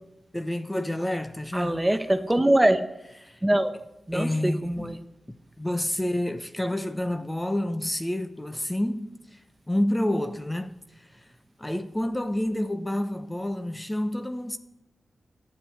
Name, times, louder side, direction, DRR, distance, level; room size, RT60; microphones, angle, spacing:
voice 1, 0.3-1.8 3.2-3.4 4.1-9.4 9.7-11.2 11.6-14.6, left 1 dB, 15° left, 1.2 m, -29 dB
voice 2, 1.5-2.8 3.4-3.7 4.1-5.0, right 1 dB, 15° right, 1.1 m, -23 dB
12.0 x 9.9 x 8.0 m
cardioid pair, 45°, 0 cm